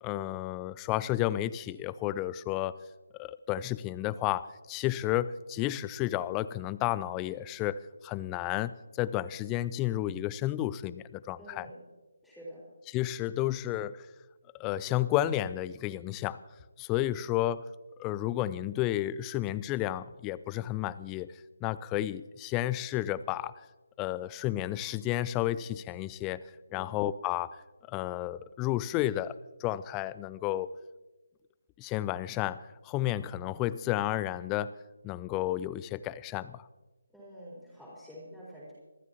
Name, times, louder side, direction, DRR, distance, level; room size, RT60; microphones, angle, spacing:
voice 1, 0.0-2.8 3.1-11.7 12.9-14.1 14.5-16.4 16.8-17.6 18.0-21.3 21.6-23.5 24.0-26.4 26.7-27.6 27.9-29.3 29.6-30.7 31.8-34.7 35.0-36.7, left 14 dB, 15° left, 17 dB, 0.4 m, -32 dB
voice 2, 11.4-11.8 12.2-12.6 26.7-27.0 37.1-38.7, equal, 5° right, -8 dB, 4.0 m, -47 dB
27.0 x 13.0 x 2.9 m, 1.2 s
figure-of-eight pair, 150°, 0 cm